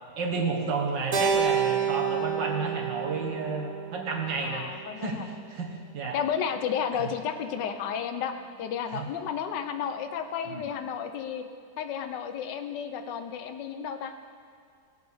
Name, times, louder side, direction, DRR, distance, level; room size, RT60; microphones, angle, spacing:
voice 1, 0.2-4.7 5.0-5.2 5.5-6.2 7.0-7.1 8.9-9.1 10.5-10.6, right 4 dB, 85° right, 1 dB, 2.0 m, -31 dB
Keyboard (musical), 1.1-5.5, right 7 dB, 65° right, 1.7 m, -30 dB
voice 2, 4.4-5.4 6.1-11.5 11.8-14.1, left 7 dB, 80° left, 8 dB, 1.4 m, -32 dB
17.5 x 8.2 x 3.5 m, 2.3 s
omnidirectional pair, 1.9 m